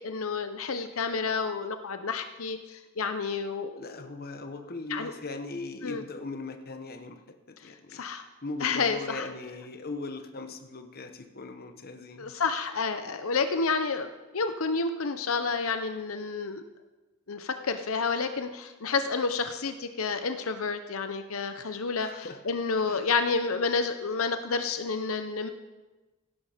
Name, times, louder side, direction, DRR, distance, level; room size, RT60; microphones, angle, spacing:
voice 1, 0.0-3.8 4.9-5.1 5.8-6.0 7.9-8.2 8.6-9.3 12.2-16.6 17.3-25.5, left 4 dB, 75° left, 9 dB, 0.8 m, -30 dB
voice 2, 3.8-8.0 8.4-12.4 22.0-22.4 22.9-23.1, left 3 dB, 45° left, 7 dB, 1.1 m, -39 dB
16.5 x 11.5 x 5.1 m, 1.2 s
head